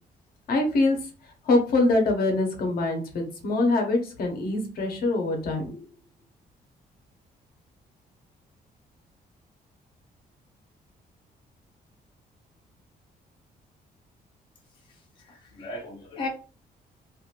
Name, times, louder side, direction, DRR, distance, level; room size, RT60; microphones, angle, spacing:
voice 1, 0.5-1.0 1.5-5.8, left 2 dB, 65° left, 3 dB, 0.9 m, -24 dB
voice 2, 15.3-16.3, left 3 dB, 30° left, 0 dB, 0.6 m, -35 dB
3.0 x 2.5 x 2.5 m, 0.35 s
cardioid pair, 170°, 16 cm